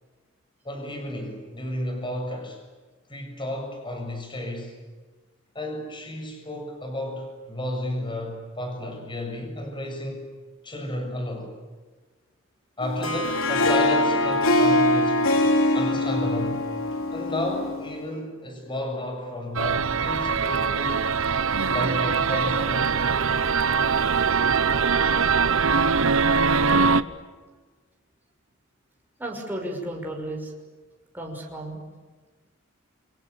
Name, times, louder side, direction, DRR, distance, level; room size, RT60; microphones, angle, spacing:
voice 1, 0.6-2.6 3.1-4.8 5.5-10.3 10.6-11.6 12.8-15.2 15.7-16.7 17.1-21.1 21.7-22.9, left 1 dB, 25° left, 4 dB, 7.1 m, -32 dB
Harp, 12.8-18.0, left 1 dB, 90° left, 3.2 m, -23 dB
sound 1, 19.6-27.0, right 5 dB, 85° right, 1.0 m, -22 dB
voice 2, 29.2-30.5 31.1-31.8, right 1 dB, 10° right, 0 dB, 6.1 m, -33 dB
29.0 x 26.0 x 7.1 m, 1.3 s
head